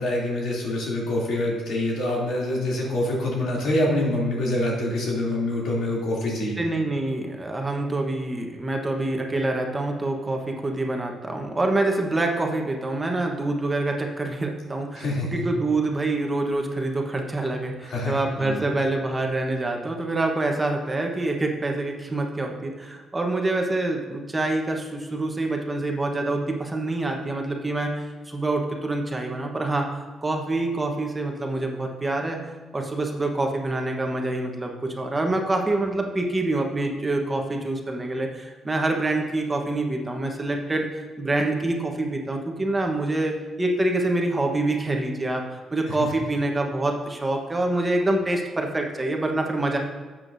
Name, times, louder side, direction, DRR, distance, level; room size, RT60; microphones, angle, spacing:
voice 1, 0.0-6.6 14.9-15.4 17.8-18.6 45.9-46.1, left 1 dB, 75° left, -4 dB, 3.0 m, -26 dB
voice 2, 6.6-29.9 30.2-32.5 32.7-49.8, right 2 dB, 20° right, 2 dB, 1.2 m, -26 dB
12.5 x 7.5 x 2.7 m, 1.4 s
cardioid pair, 90°, 0 cm